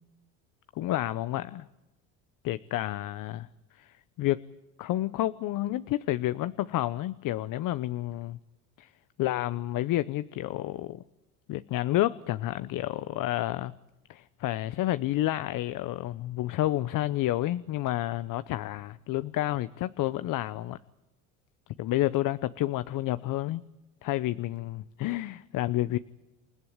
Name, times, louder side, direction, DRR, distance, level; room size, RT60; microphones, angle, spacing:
voice 1, 0.8-1.7 2.4-3.5 3.7-4.5 4.8-8.4 8.8-8.9 9.2-11.0 11.5-13.7 14.1-20.8 21.8-23.6 24.0-26.0, left 15 dB, 60° left, 14 dB, 0.8 m, -30 dB
28.5 x 15.5 x 9.6 m, 1.0 s
supercardioid pair, 85°, 36 cm